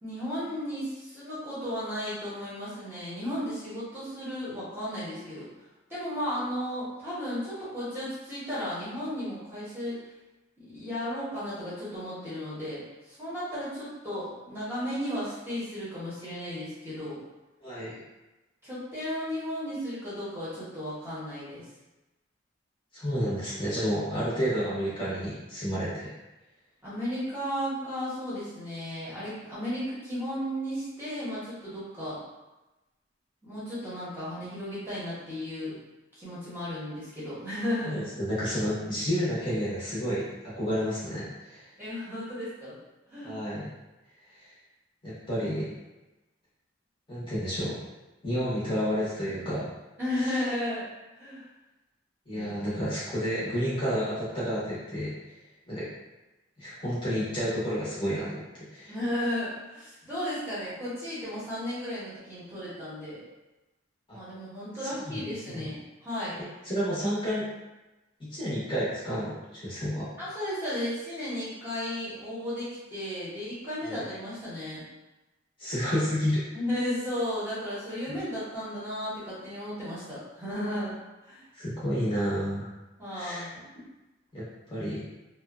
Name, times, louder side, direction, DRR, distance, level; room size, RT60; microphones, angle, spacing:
voice 1, 0.0-5.5 5.9-10.0 10.6-17.2 18.6-21.7 26.8-32.2 33.4-35.7 36.2-38.0 41.8-42.8 43.1-43.4 50.0-50.8 51.2-51.4 52.3-52.5 58.9-63.2 64.1-66.4 70.2-74.8 76.5-80.9 81.2-81.4 83.0-83.6, left 1 dB, 10° right, -11 dB, 0.9 m, -34 dB
voice 2, 17.6-18.0 22.9-26.1 37.9-41.7 43.2-43.7 44.3-44.5 45.0-45.7 47.1-47.7 48.2-49.6 50.2-50.4 52.3-55.1 55.7-55.9 56.6-58.4 58.7-58.9 64.1-64.2 65.1-65.2 65.5-65.7 66.6-67.5 68.2-70.1 73.8-74.0 75.6-76.4 81.5-82.7 83.1-83.5 84.3-85.0, equal, 25° left, -10 dB, 0.8 m, -30 dB
2.7 x 2.1 x 2.3 m, 1.1 s
head